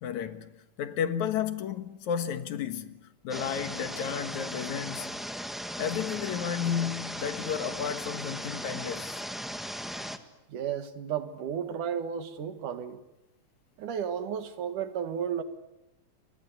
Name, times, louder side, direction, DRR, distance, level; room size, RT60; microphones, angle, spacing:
voice 1, 0.0-0.5 0.8-5.2 5.8-9.2, left 8 dB, 75° left, 2.7 m, -32 dB
sound 1, 3.3-10.2, equal, ahead, 0.5 m, -37 dB
voice 2, 10.5-13.0 13.8-15.4, right 8 dB, 90° right, 3.3 m, -33 dB
29.5 x 24.5 x 8.2 m
omnidirectional pair, 3.5 m